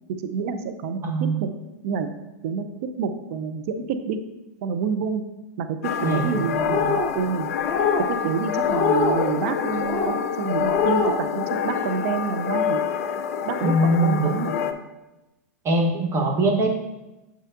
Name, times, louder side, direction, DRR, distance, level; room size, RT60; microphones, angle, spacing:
voice 1, 0.2-1.5 1.8-2.1 2.4-4.2 4.6-5.2 5.6-7.5 8.1-12.8 13.4-14.5, right 6 dB, 60° right, 9 dB, 0.6 m, -28 dB
voice 2, 1.0-1.4 6.0-6.4 6.7-6.8 13.6-14.2 15.6-16.7, right 1 dB, 30° right, 1 dB, 1.2 m, -22 dB
sound 1, 5.8-14.7, left 8 dB, 65° left, 0.5 m, -27 dB
sound 2, 6.6-7.1 7.6-8.1 8.6-9.2 9.8-10.1 10.6-11.2, left 5 dB, 35° left, 0.9 m, -23 dB
6.4 x 6.4 x 2.6 m, 1.0 s
hypercardioid pair, 100°, 9 cm